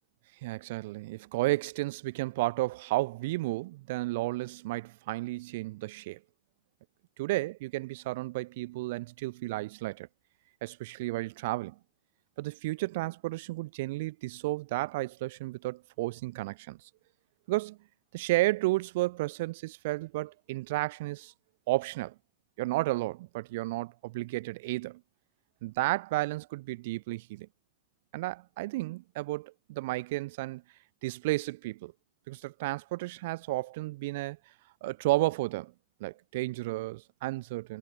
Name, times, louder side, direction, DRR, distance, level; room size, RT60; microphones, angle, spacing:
voice 1, 0.4-6.2 7.2-10.1 10.6-11.8 12.4-16.8 17.5-17.8 18.1-21.3 21.7-22.1 22.6-25.0 25.6-27.5 28.1-30.6 31.0-31.9 32.3-34.4 34.8-35.7 36.0-37.8, right 19 dB, 50° right, 0.7 m, -32 dB
figure-of-eight pair, 90°, 0 cm